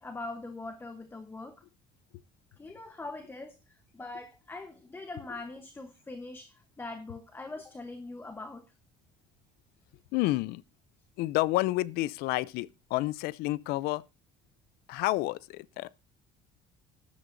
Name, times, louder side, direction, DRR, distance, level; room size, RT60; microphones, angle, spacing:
voice 1, 0.0-1.6 2.6-8.6, left 2 dB, 15° left, 1.0 m, -42 dB
voice 2, 10.1-10.6 11.2-14.0 14.9-16.0, left 18 dB, 80° left, 0.5 m, -30 dB
14.0 x 11.0 x 2.6 m
cardioid pair, 135°, 16 cm